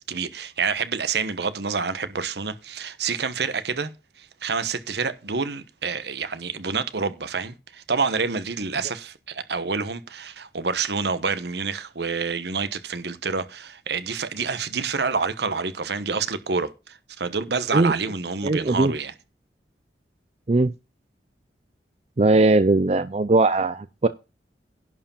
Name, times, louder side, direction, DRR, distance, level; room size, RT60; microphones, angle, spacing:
voice 1, 0.1-3.9 4.2-19.1, right 5 dB, 70° right, 1.1 m, -28 dB
voice 2, 18.4-18.9 20.5-20.7 22.2-24.1, right 2 dB, 35° right, 0.5 m, -19 dB
11.0 x 4.8 x 7.1 m
head